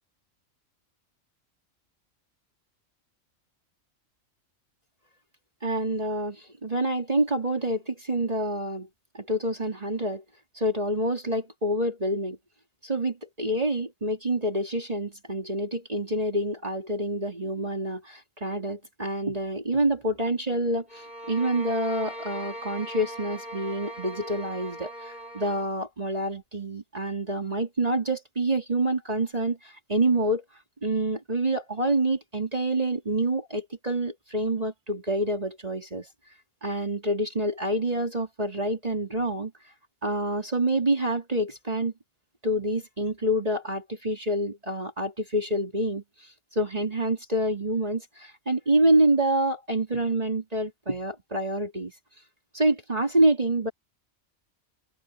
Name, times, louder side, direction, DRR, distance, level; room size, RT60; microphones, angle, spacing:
voice 1, 5.6-8.9 9.1-10.2 10.5-12.4 12.8-30.4 30.8-36.1 36.6-39.5 40.0-41.9 42.4-46.0 46.5-51.9 52.5-53.7, right 1 dB, 30° right, 3.1 m, -27 dB
sound 1, 20.9-25.7, equal, 35° left, 4.9 m, -40 dB
open air
omnidirectional pair, 1.3 m